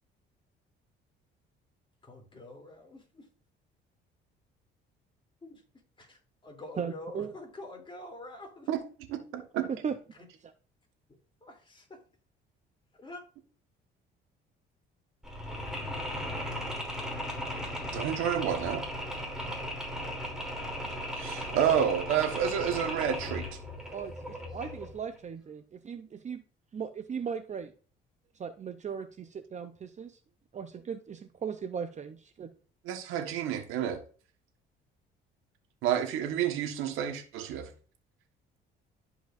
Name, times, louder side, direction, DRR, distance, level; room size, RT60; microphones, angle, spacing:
voice 1, 2.0-3.3 5.4-5.6 6.0-8.7 10.2-10.3 11.4-12.0 12.9-13.2, left 2 dB, 25° left, 1 dB, 3.1 m, -46 dB
voice 2, 6.8-7.3 9.7-10.0 23.9-26.4 26.7-27.7 28.4-30.2 30.5-32.5, right 7 dB, 35° right, 8 dB, 0.6 m, -37 dB
voice 3, 9.1-9.7 17.9-18.8 21.1-23.5 32.8-34.0 35.8-37.7, right 9 dB, 85° right, 5 dB, 1.4 m, -29 dB
Mechanisms, 15.2-25.0, equal, ahead, 3.1 m, -37 dB
12.5 x 5.1 x 2.6 m, 0.40 s
supercardioid pair, 85°, 20 cm